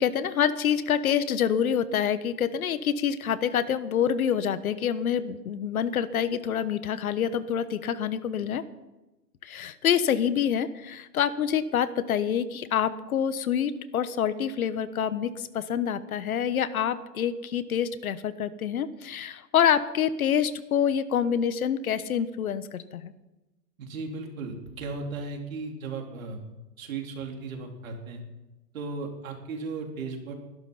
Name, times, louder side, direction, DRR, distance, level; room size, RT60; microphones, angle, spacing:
voice 1, 0.0-8.6 9.4-23.1, left 8 dB, 60° left, 14 dB, 1.2 m, -26 dB
voice 2, 23.8-26.4 26.8-28.2 28.7-30.3, right 4 dB, 55° right, 2 dB, 4.0 m, -36 dB
20.0 x 12.0 x 5.7 m, 1.0 s
hypercardioid pair, 150°, 49 cm